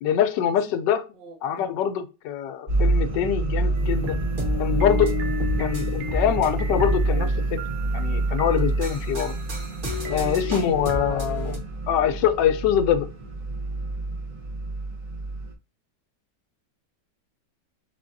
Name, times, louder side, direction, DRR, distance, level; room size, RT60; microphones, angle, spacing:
voice 1, 0.0-1.1 1.4-4.2 4.6-5.2 5.6-7.6 7.9-9.3 10.0-13.1, left 9 dB, 80° left, 1.2 m, -24 dB
voice 2, 1.1-1.7 10.2-10.4, right 6 dB, 90° right, 1.6 m, -45 dB
sound 1, 2.7-15.5, right 2 dB, 55° right, 0.5 m, -27 dB
sound 2, 3.7-11.7, right 7 dB, 70° right, 1.1 m, -44 dB
sound 3, 3.8-7.3 8.6-11.6, left 4 dB, 30° right, 1.3 m, -32 dB
3.7 x 3.4 x 2.6 m
omnidirectional pair, 1.9 m